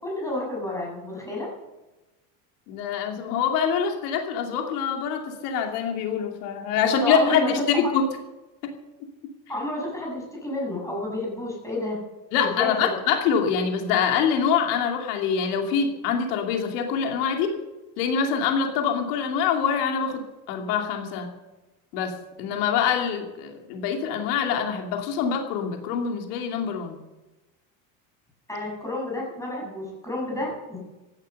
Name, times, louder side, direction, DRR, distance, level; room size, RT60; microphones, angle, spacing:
voice 1, 0.0-1.5 6.7-7.5 7.8-7.9 9.5-12.0 12.4-13.0 28.5-30.8, left 2 dB, 5° left, -3 dB, 7.1 m, -30 dB
voice 2, 2.7-8.0 8.6-8.7 12.3-17.5 18.0-20.2 20.5-21.3 21.9-22.1 22.4-27.0, left 7 dB, 90° left, 3 dB, 2.7 m, -25 dB
15.5 x 11.5 x 6.7 m, 1.1 s
cardioid pair, 155°, 45 cm